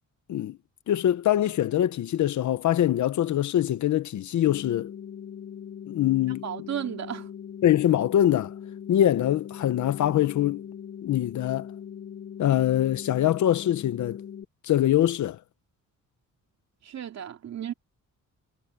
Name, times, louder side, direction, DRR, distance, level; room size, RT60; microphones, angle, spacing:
voice 1, 0.9-4.9 5.9-6.4 7.6-8.5 8.9-10.6 11.0-11.7 12.4-14.2 14.6-15.4, left 12 dB, 65° left, 0.9 m, -23 dB
sound 1, 4.4-14.4, left 8 dB, 35° left, 0.5 m, -41 dB
voice 2, 6.4-7.3 16.8-17.7, right 10 dB, 55° right, 2.8 m, -34 dB
wide cardioid pair, 170°, 32 cm